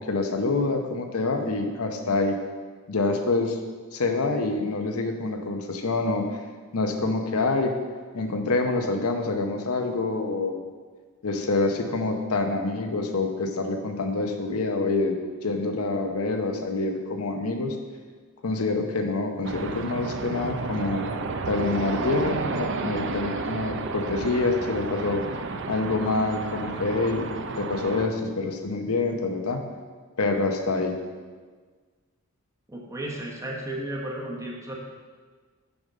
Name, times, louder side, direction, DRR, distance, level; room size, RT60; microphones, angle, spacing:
voice 1, 0.0-2.4 2.9-3.6 3.9-6.4 6.7-7.8 8.1-10.6 11.2-15.2 15.4-17.8 18.4-21.0 21.5-25.2 25.7-27.3 27.6-29.7 30.2-30.9, left 3 dB, 90° left, 5 dB, 0.8 m, -26 dB
sound 1, 19.4-28.1, right 3 dB, 55° right, 0.5 m, -32 dB
voice 2, 32.7-34.7, right 1 dB, 15° right, -2 dB, 1.1 m, -34 dB
7.0 x 5.2 x 5.2 m, 1.5 s
head